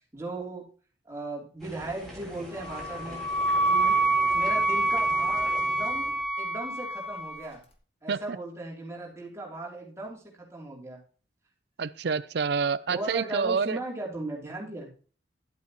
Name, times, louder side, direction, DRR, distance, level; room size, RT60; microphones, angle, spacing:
voice 1, 0.1-0.7 1.0-3.3 3.6-4.0 4.3-7.6 8.0-11.0 12.9-14.9, right 2 dB, 15° right, -2 dB, 3.0 m, -37 dB
sound 1, 1.6-6.2, equal, ahead, 3.7 m, -44 dB
Wind instrument woodwind instrument, 2.6-7.4, right 2 dB, 30° left, 1.6 m, -26 dB
voice 2, 11.8-13.8, right 5 dB, 60° right, 17 dB, 0.5 m, -28 dB
11.5 x 8.4 x 3.0 m, 0.40 s
head